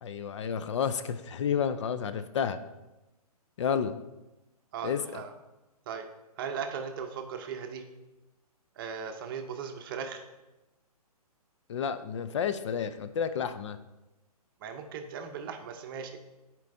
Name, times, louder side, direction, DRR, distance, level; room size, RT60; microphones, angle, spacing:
voice 1, 0.0-2.6 3.6-4.0 4.8-5.2 11.7-13.8, left 7 dB, 50° left, 11 dB, 0.4 m, -31 dB
voice 2, 4.7-5.3 5.9-6.1 6.4-7.9 8.8-10.2 14.6-16.2, right 6 dB, 35° right, 6 dB, 0.7 m, -38 dB
10.5 x 4.5 x 2.6 m, 1.0 s
hypercardioid pair, 140°, 20 cm